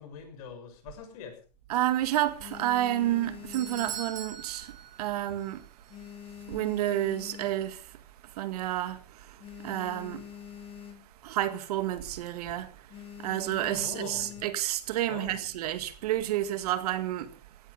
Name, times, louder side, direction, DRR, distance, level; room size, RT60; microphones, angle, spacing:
voice 1, 0.0-1.4 13.7-14.4 15.1-15.5, left 6 dB, 60° left, 6.4 m, -43 dB
Phone Vibrate, 1.1-1.8 2.2-4.7 5.0-5.4 5.7-7.9 8.4-8.5 8.7-8.8 9.1-11.3 11.6-11.9 12.2-12.5 12.9-14.7 15.5-16.0, left 10 dB, 25° left, 2.3 m, -46 dB
voice 2, 1.7-4.7 5.0-5.6 6.5-7.9 8.4-10.2 11.2-12.7 13.2-17.3, right 13 dB, 65° right, 1.8 m, -30 dB
Doorbell, 3.0-5.6 5.8-5.9 6.7-6.8, right 9 dB, 40° right, 5.4 m, -42 dB
16.5 x 14.5 x 5.1 m
hypercardioid pair, 130°, 21 cm